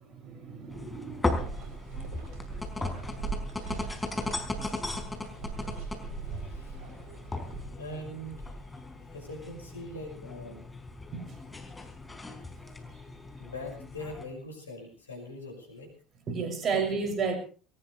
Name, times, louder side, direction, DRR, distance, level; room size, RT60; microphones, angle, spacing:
voice 1, 0.2-1.2 11.1-11.3 16.3-17.4, right 5 dB, 40° right, 5 dB, 6.6 m, -31 dB
sound 1, 0.7-14.3, left 2 dB, 15° left, 4.7 m, -37 dB
sound 2, 1.3-7.6, right 5 dB, 60° right, 7.8 m, -40 dB
voice 2, 6.2-6.8 7.8-8.5 9.1-10.7 13.4-15.9 16.2-17.0, left 1 dB, 85° left, 3 dB, 6.0 m, -42 dB
22.0 x 19.5 x 3.3 m, 0.39 s
figure-of-eight pair, 65°, 0 cm